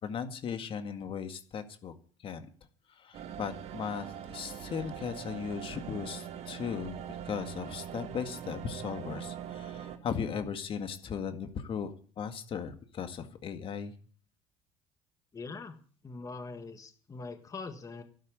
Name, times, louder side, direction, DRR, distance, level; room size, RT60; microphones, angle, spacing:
voice 1, 0.0-1.9 2.2-2.5 3.0-13.9, left 7 dB, 45° left, 8 dB, 1.9 m, -37 dB
sound 1, 3.1-10.0, right 9 dB, 60° right, 2.2 m, -42 dB
voice 2, 15.3-15.8 16.0-18.0, left 4 dB, 25° left, 7 dB, 1.7 m, -42 dB
12.0 x 9.4 x 8.5 m, 0.43 s
supercardioid pair, 90°, 12 cm